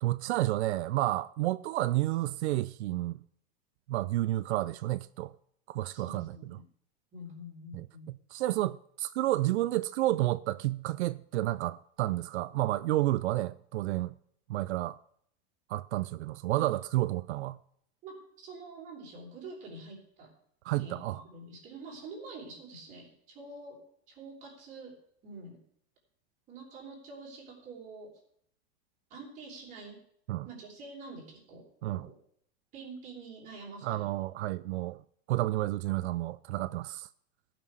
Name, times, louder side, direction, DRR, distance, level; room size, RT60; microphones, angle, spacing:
voice 1, 0.0-3.2 3.9-5.3 5.7-6.4 7.7-7.9 8.3-14.1 14.5-15.0 15.7-17.6 20.6-21.2 30.3-30.5 31.8-32.1 33.8-35.0 35.3-37.1, right 16 dB, 90° right, 0.6 m, -30 dB
voice 2, 5.9-6.7 7.1-8.1 16.6-16.7 18.0-20.3 20.8-23.8 24.1-24.9 25.2-25.6 26.5-28.1 29.1-30.0 30.4-31.6 31.9-32.1 32.7-34.1, right 2 dB, 25° right, 3.8 m, -46 dB
17.0 x 6.2 x 4.8 m
supercardioid pair, 180°, 33 cm